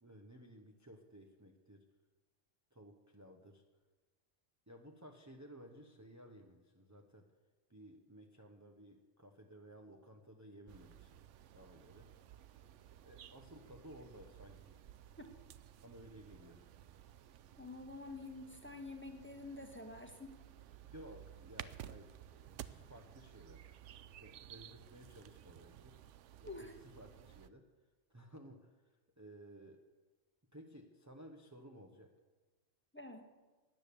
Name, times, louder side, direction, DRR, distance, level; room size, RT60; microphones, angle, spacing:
voice 1, 0.0-1.9 2.7-3.6 4.7-7.3 7.7-11.2 11.5-12.1 13.0-14.8 15.8-16.7 20.8-23.6 24.2-26.0 26.4-27.7 28.1-29.8 30.5-32.1, right 1 dB, 15° right, 3 dB, 1.0 m, -56 dB
sound 1, 10.7-27.5, right 11 dB, 80° right, 1.0 m, -55 dB
voice 2, 17.6-20.4 26.5-26.7 32.9-33.3, left 2 dB, 10° left, 4 dB, 1.4 m, -48 dB
17.0 x 10.0 x 7.0 m, 1.3 s
omnidirectional pair, 1.2 m